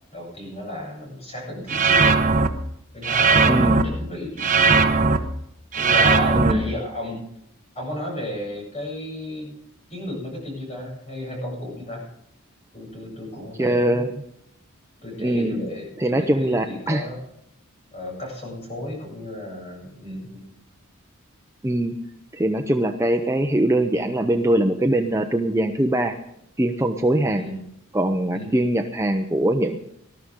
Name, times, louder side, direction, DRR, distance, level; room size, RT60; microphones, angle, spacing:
voice 1, 0.1-2.2 2.9-4.8 5.7-7.2 7.7-9.5 9.9-12.0 12.7-14.0 15.0-17.2 17.9-20.4 27.2-27.6 28.3-28.6, left 1 dB, 30° left, -2 dB, 7.9 m, -33 dB
sound 1, 1.7-2.5 3.0-3.8 4.4-5.2 5.7-6.5, right 4 dB, 40° right, 1.1 m, -18 dB
voice 2, 3.5-3.8 6.4-6.6 13.6-14.1 15.2-15.5 16.0-17.1 21.6-21.9 22.3-26.2 26.6-27.5 27.9-29.8, right 1 dB, 15° right, 5 dB, 0.7 m, -22 dB
20.0 x 13.0 x 3.7 m, 0.75 s
head